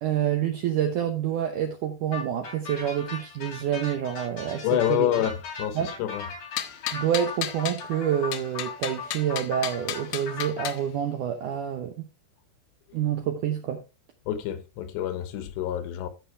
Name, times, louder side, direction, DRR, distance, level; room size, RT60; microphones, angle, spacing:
voice 1, 0.0-5.1 5.7-6.0 6.9-12.1 12.9-13.8, right 9 dB, 80° right, 1.8 m, -28 dB
sound 1, 2.1-10.7, left 4 dB, 45° left, 4.5 m, -38 dB
voice 2, 4.6-6.2 14.3-16.1, left 11 dB, 90° left, 3.4 m, -27 dB
sound 2, 6.6-7.8 8.3-10.8, left 11 dB, 75° left, 2.1 m, -33 dB
14.5 x 5.8 x 3.3 m
omnidirectional pair, 4.9 m